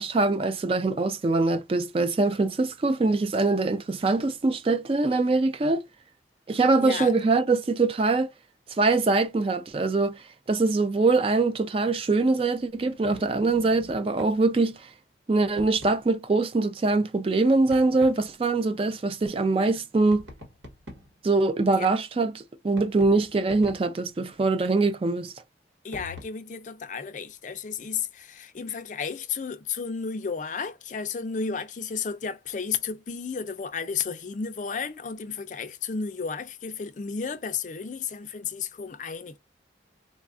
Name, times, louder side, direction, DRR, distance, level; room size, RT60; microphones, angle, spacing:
voice 1, 0.0-5.8 6.5-8.3 8.7-14.9 15.3-20.2 21.2-25.3, right 3 dB, 30° right, 0.3 m, -23 dB
voice 2, 6.8-7.1 21.8-21.9 25.8-39.4, left 6 dB, 40° left, 0.4 m, -33 dB
sound 1, 12.5-14.4 15.6-16.0 17.7-18.2 20.1-21.2 22.7-24.0 25.9-26.2, left 1 dB, 90° right, 1.4 m, -45 dB
4.0 x 2.3 x 2.5 m
head